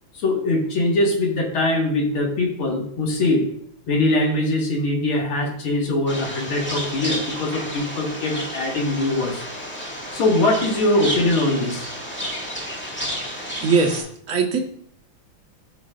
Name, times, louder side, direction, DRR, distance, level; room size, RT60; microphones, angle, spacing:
voice 1, 0.1-3.5 3.9-9.4 10.1-11.8, left 2 dB, 85° left, 1 dB, 2.5 m, -22 dB
sound 1, 6.1-14.0, equal, 5° left, 1.8 m, -31 dB
voice 2, 13.6-14.6, right 5 dB, 45° right, 1 dB, 1.6 m, -21 dB
14.5 x 6.2 x 2.5 m, 0.62 s
omnidirectional pair, 2.2 m